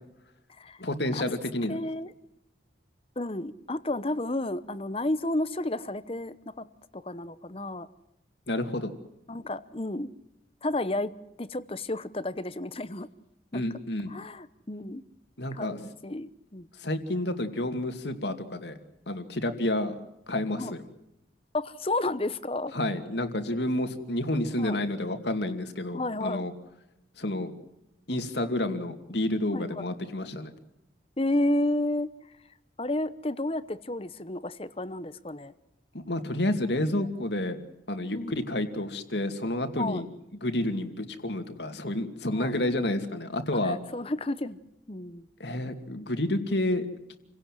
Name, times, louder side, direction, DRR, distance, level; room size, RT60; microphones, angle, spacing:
voice 1, 0.8-1.8 8.5-8.9 13.5-14.1 15.4-15.8 16.8-18.8 19.1-19.9 20.3-20.8 22.7-26.5 27.2-27.5 28.1-30.5 36.1-37.6 37.9-40.1 40.4-43.8 45.4-46.9, left 1 dB, 65° left, 2.5 m, -30 dB
voice 2, 1.7-2.1 3.2-6.6 6.9-7.9 9.3-10.1 10.6-11.1 11.4-13.1 13.5-13.6 14.1-15.0 15.5-16.7 20.5-20.7 21.5-22.7 24.6-24.8 25.9-26.5 29.5-29.7 31.2-32.1 32.8-35.5 38.1-38.4 39.8-40.0 42.3-42.5 43.6-44.6 44.9-45.3, left 1 dB, 30° left, 0.9 m, -31 dB
28.5 x 17.5 x 7.6 m
head